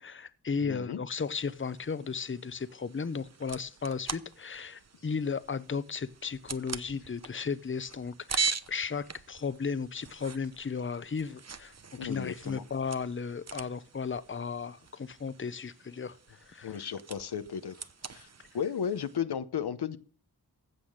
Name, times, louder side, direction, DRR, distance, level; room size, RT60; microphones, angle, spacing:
voice 1, 0.0-11.7 12.0-16.9, left 5 dB, 30° left, 0.8 m, -35 dB
voice 2, 0.6-1.0 12.0-12.6 16.6-17.8 18.1-18.3 18.5-20.0, left 8 dB, 85° left, 0.8 m, -34 dB
sound 1, 1.2-19.2, right 5 dB, 45° right, 0.9 m, -42 dB
15.5 x 5.6 x 6.4 m
cardioid pair, 50°, 38 cm